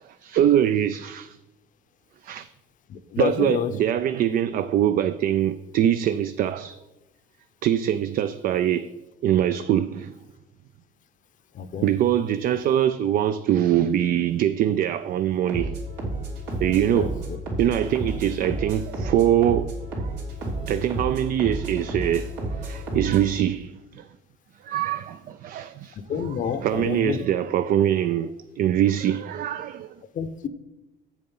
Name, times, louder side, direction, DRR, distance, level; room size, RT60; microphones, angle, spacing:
voice 1, 0.0-1.4 2.2-2.5 3.2-6.8 7.6-8.9 9.2-10.1 11.8-15.7 16.6-17.3 17.6-20.1 20.7-24.1 24.6-30.0, right 10 dB, 55° right, 0.4 m, -23 dB
voice 2, 2.9-3.7 11.6-11.9 16.9-17.1 26.1-27.2 30.2-30.5, left 7 dB, 50° left, 0.7 m, -28 dB
sound 1, 15.5-23.3, right 2 dB, 90° right, 3.1 m, -31 dB
7.7 x 7.1 x 5.4 m
cardioid pair, 110°, 17 cm